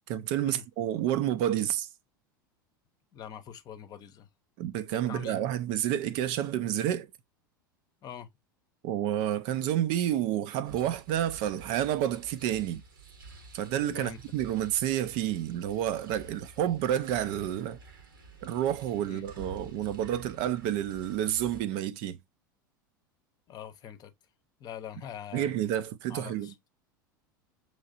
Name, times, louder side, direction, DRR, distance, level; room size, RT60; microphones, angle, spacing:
voice 1, 0.1-1.9 4.6-7.1 8.8-12.8 13.5-17.8 18.4-22.2 25.3-26.5, right 11 dB, 50° right, 0.4 m, -29 dB
voice 2, 3.1-4.3 4.9-5.4 8.0-8.3 13.9-14.2 19.0-19.2 23.5-24.1 24.6-25.5 26.1-26.5, left 9 dB, 35° left, 0.7 m, -43 dB
sound 1, 10.6-21.6, right 4 dB, 75° right, 1.0 m, -50 dB
6.2 x 3.1 x 2.5 m
figure-of-eight pair, 80°, 11 cm